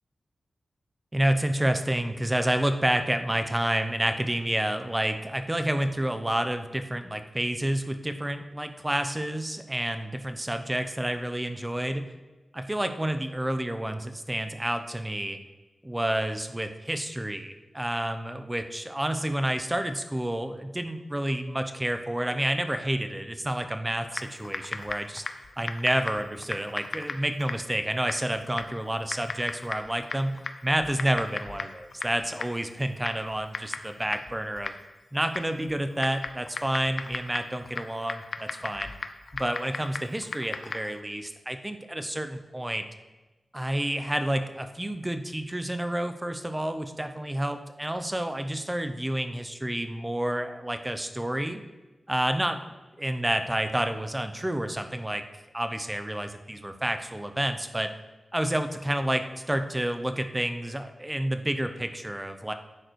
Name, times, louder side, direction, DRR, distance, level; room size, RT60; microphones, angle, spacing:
voice 1, 1.1-12.1 12.5-15.4 15.8-25.2 25.6-34.7 35.1-38.9 39.3-42.8 43.5-51.6 52.1-52.6 53.0-55.2 55.5-57.9 58.3-62.5, right 1 dB, 10° right, 8 dB, 0.7 m, -29 dB
Typing, 24.1-41.0, left 4 dB, 50° left, 0.6 m, -38 dB
10.5 x 9.2 x 4.7 m, 1.2 s
wide cardioid pair, 155°, 0 cm